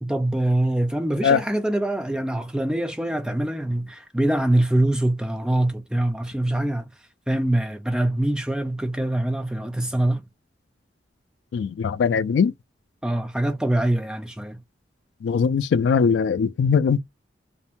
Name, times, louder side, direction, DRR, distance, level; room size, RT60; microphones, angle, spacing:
voice 1, 0.0-6.9 7.3-10.2 13.0-14.6, right 1 dB, 5° right, 0.3 m, -24 dB
voice 2, 11.5-12.5 15.2-17.0, left 6 dB, 75° left, 0.3 m, -20 dB
2.5 x 2.1 x 2.8 m
head